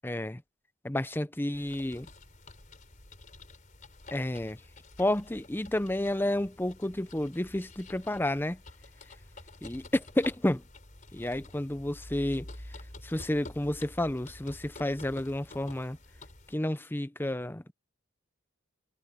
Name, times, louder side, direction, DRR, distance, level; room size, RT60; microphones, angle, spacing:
voice 1, 0.0-0.4 0.8-2.1 4.1-4.6 5.0-8.6 9.6-10.6 11.1-12.5 13.0-16.0 16.5-17.7, left 1 dB, 10° left, 0.7 m, -31 dB
sound 1, 1.5-16.5, left 2 dB, 40° left, 4.2 m, -49 dB
head